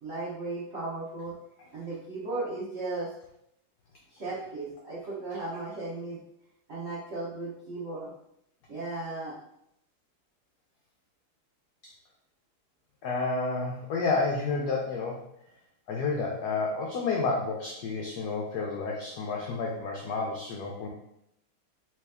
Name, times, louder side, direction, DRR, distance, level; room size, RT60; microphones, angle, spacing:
voice 1, 0.0-1.3 1.7-3.1 4.1-6.2 6.7-8.1 8.7-9.3, right 2 dB, 50° right, -8 dB, 0.8 m, -36 dB
voice 2, 13.0-15.2 15.9-20.9, left 3 dB, 85° left, -1 dB, 0.8 m, -30 dB
3.4 x 3.0 x 3.4 m, 0.77 s
omnidirectional pair, 2.4 m